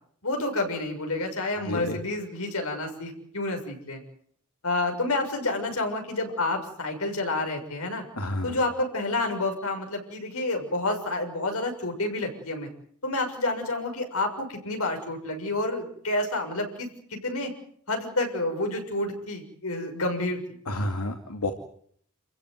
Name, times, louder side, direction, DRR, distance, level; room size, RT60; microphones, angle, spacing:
voice 1, 0.2-4.0 4.6-8.0 8.4-12.7 13.0-17.5 17.9-20.4, left 2 dB, 70° left, 3 dB, 6.9 m, -29 dB
voice 2, 1.6-2.0 8.1-8.6 20.7-21.5, left 1 dB, 85° left, 4 dB, 2.6 m, -30 dB
28.5 x 16.0 x 9.6 m, 0.64 s
head